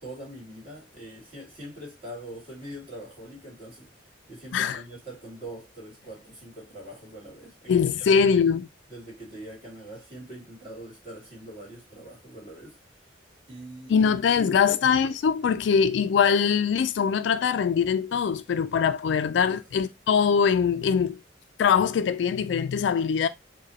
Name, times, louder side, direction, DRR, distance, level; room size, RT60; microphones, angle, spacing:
voice 1, 0.0-3.9 4.3-7.8 8.1-8.5 8.9-12.8 13.5-14.8 19.5-19.6, right 1 dB, 30° right, 2.3 m, -43 dB
voice 2, 7.7-8.7 13.9-21.2 21.6-23.3, left 6 dB, 70° left, 0.3 m, -22 dB
4.7 x 2.2 x 2.9 m
head